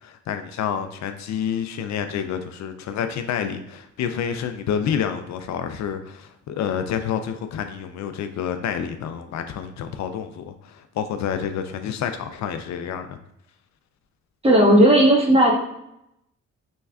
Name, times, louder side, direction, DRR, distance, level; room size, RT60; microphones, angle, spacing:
voice 1, 0.0-13.2, left 8 dB, 65° left, 8 dB, 0.4 m, -28 dB
voice 2, 14.4-15.5, right 1 dB, 20° right, -2 dB, 1.3 m, -14 dB
5.3 x 3.2 x 2.3 m, 0.81 s
cardioid pair, 90°, 30 cm